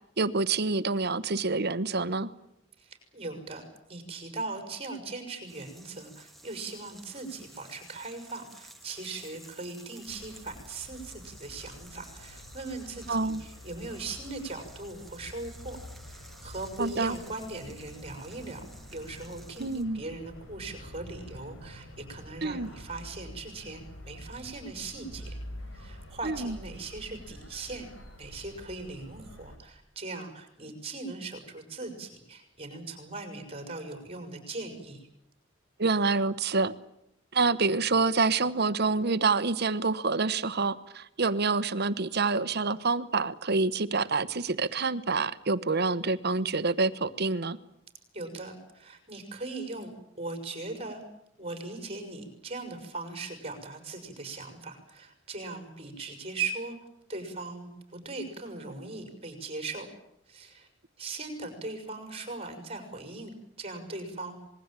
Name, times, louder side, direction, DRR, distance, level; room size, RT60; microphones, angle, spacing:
voice 1, 0.2-2.3 13.1-13.4 16.8-17.2 19.6-20.0 22.4-22.7 26.2-26.5 35.8-36.7 37.3-47.6, right 4 dB, 55° right, 15 dB, 1.1 m, -27 dB
voice 2, 2.8-15.8 16.0-18.7 18.9-25.4 25.7-27.9 28.2-35.1 48.1-49.9 50.2-51.0 51.4-56.8 57.1-59.9 60.3-60.7 61.0-64.3, right 3 dB, 30° right, 6 dB, 6.0 m, -39 dB
sound 1, 5.5-19.8, right 1 dB, ahead, 2.3 m, -53 dB
sound 2, 10.1-29.6, equal, 70° left, 5.3 m, -47 dB
26.5 x 21.0 x 9.0 m, 0.80 s
head